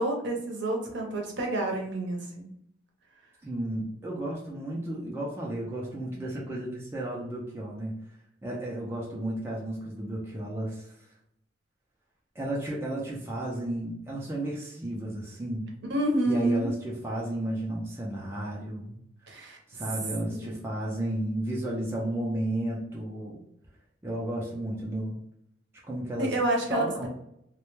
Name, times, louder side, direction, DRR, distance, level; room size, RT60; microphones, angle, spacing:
voice 1, 0.0-2.5 15.9-16.7 19.3-19.6 20.3-20.5 26.2-27.1, right 1 dB, 65° right, 0 dB, 0.7 m, -28 dB
voice 2, 3.4-8.0 8.4-10.9 12.4-15.7 16.3-19.0 19.7-23.4 24.0-25.2 25.8-26.3 26.7-27.1, right 1 dB, 15° right, -4 dB, 0.4 m, -33 dB
2.1 x 2.1 x 3.0 m, 0.76 s
head